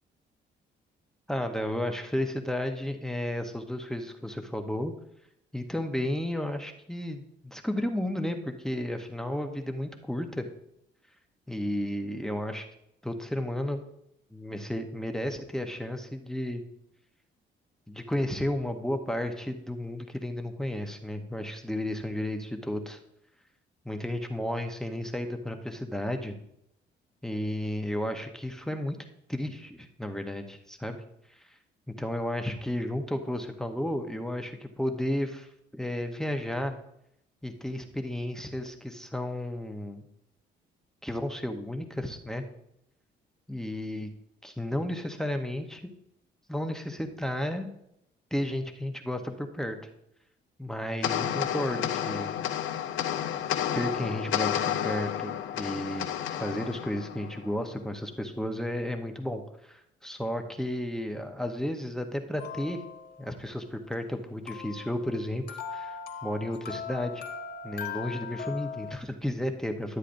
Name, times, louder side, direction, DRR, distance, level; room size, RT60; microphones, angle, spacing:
voice 1, 1.3-4.9 5.5-10.5 11.5-12.7 13.0-13.8 14.3-16.6 17.9-23.0 23.8-26.4 27.2-29.0 29.3-31.0 31.3-31.5 32.0-36.8 37.4-40.0 41.0-42.4 43.5-44.1 44.4-45.9 46.5-47.7 48.3-49.8 50.6-52.3 53.7-56.1 56.4-62.8 63.2-67.2 67.6-70.0, left 1 dB, 5° left, 5 dB, 0.8 m, -33 dB
sound 1, 51.0-57.7, left 10 dB, 75° left, 0.6 m, -31 dB
sound 2, 62.4-63.3 64.5-69.0, left 6 dB, 55° left, 1.5 m, -39 dB
11.5 x 8.2 x 2.6 m, 0.79 s
cardioid pair, 90°, 20 cm